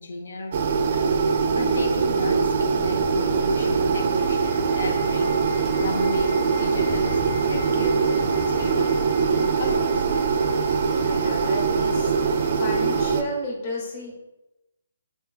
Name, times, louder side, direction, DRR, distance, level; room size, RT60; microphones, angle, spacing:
voice 1, 0.0-8.9 9.3-10.0, left 2 dB, 80° left, 2 dB, 0.5 m, -35 dB
sound 1, 0.5-13.2, right 5 dB, 40° right, 0.3 m, -22 dB
sound 2, 1.1-13.2, right 1 dB, 50° left, 0.9 m, -38 dB
Thunder, 2.6-8.7, left 1 dB, 10° left, 0.7 m, -41 dB
voice 2, 11.0-12.1 12.6-14.1, left 1 dB, 30° left, -2 dB, 1.0 m, -33 dB
3.9 x 3.6 x 2.3 m, 0.98 s
hypercardioid pair, 170°, 0 cm